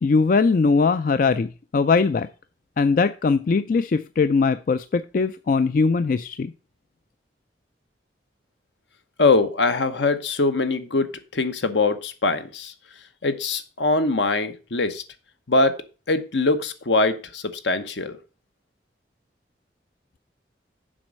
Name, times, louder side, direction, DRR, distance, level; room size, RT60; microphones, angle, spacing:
voice 1, 0.0-2.3 2.8-6.5, left 4 dB, 45° left, 12 dB, 0.3 m, -20 dB
voice 2, 9.2-12.7 13.2-15.0 15.5-15.8 16.1-18.2, left 3 dB, 75° left, 9 dB, 1.0 m, -22 dB
7.5 x 5.3 x 6.2 m, 0.34 s
head